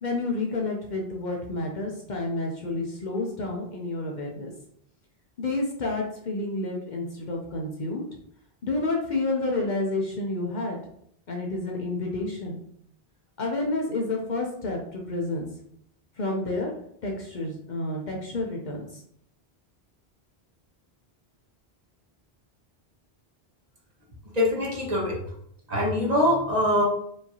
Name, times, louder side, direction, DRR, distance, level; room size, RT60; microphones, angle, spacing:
voice 1, 0.0-4.5 5.4-8.0 8.6-10.8 11.3-12.6 13.4-15.5 16.2-16.7 17.0-19.0, left 2 dB, 50° left, 0 dB, 0.7 m, -29 dB
voice 2, 24.3-25.2 25.7-26.8, left 1 dB, 40° right, -2 dB, 1.0 m, -23 dB
4.5 x 2.7 x 2.8 m, 0.70 s
omnidirectional pair, 1.1 m